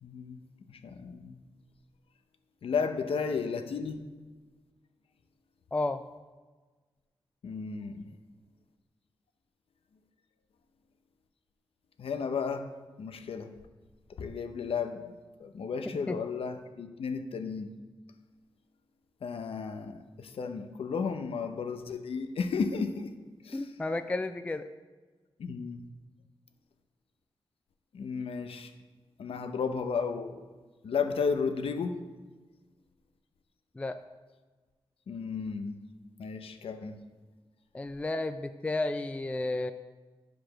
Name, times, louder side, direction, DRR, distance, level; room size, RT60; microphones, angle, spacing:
voice 1, 0.0-0.4 0.7-1.4 2.6-4.0 7.4-8.0 12.0-12.7 13.0-13.5 14.2-15.1 15.4-17.7 19.2-23.1 23.4-23.6 25.4-25.8 27.9-28.7 29.2-30.4 30.8-31.9 35.1-35.8 36.2-37.0, left 5 dB, 75° left, 8 dB, 0.7 m, -33 dB
voice 2, 5.7-6.0 16.1-16.2 23.5-24.6 33.8-34.0 37.7-39.7, left 2 dB, 15° left, 9 dB, 0.3 m, -32 dB
11.0 x 5.1 x 6.2 m, 1.3 s
wide cardioid pair, 130°, 10 cm